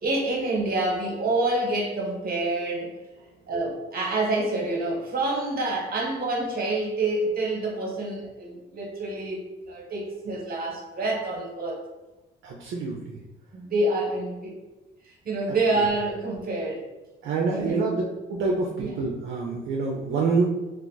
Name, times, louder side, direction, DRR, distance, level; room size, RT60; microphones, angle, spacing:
voice 1, 0.0-2.9 3.5-11.8 12.9-13.0 13.5-14.5 15.0-16.9 17.5-17.9 18.8-19.0, right 2 dB, 50° right, -1 dB, 1.1 m, -27 dB
voice 2, 12.4-13.2 17.2-18.0 18.3-20.5, right 4 dB, 75° right, -2 dB, 0.5 m, -26 dB
2.5 x 2.4 x 3.9 m, 1.1 s
cardioid pair, 90°, 20 cm